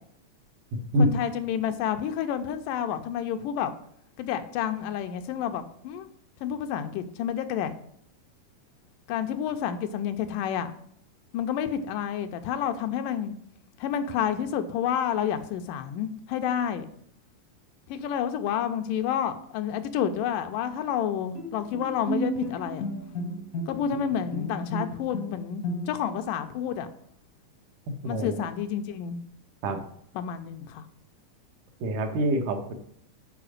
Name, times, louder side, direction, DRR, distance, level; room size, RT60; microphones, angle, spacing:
voice 1, 1.0-3.7 4.2-6.1 6.4-7.7 9.1-10.7 11.3-13.3 13.8-16.9 17.9-22.9 23.7-26.9 28.0-29.2 30.2-30.9, left 9 dB, 85° left, 8 dB, 2.3 m, -29 dB
Bowed string instrument, 21.3-26.2, equal, 60° left, 0.9 m, -33 dB
voice 2, 28.0-28.5 29.6-29.8 31.8-32.7, right 1 dB, 75° right, 4 dB, 2.6 m, -25 dB
7.0 x 4.9 x 6.4 m, 0.68 s
omnidirectional pair, 3.8 m